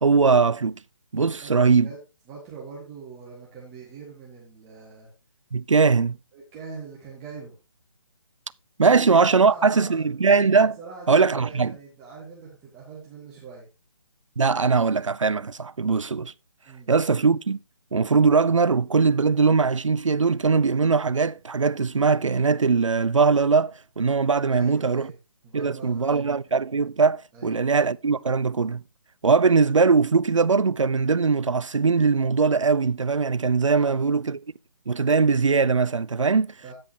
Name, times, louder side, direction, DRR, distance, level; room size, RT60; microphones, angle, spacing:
voice 1, 0.0-0.8 1.1-1.9 5.5-6.1 8.8-10.8 11.1-11.7 14.4-16.3 16.9-17.6 17.9-25.1 25.5-28.8 29.2-34.4 34.9-36.5, right 4 dB, 75° right, 0.4 m, -21 dB
voice 2, 2.3-5.1 6.3-7.6 8.8-10.1 10.8-13.7 16.6-16.9 24.5-25.2 25.4-26.3 27.3-27.6 33.7-34.1 36.6-36.7, right 5 dB, 15° right, 1.8 m, -42 dB
16.0 x 5.5 x 2.8 m
figure-of-eight pair, 145°, 16 cm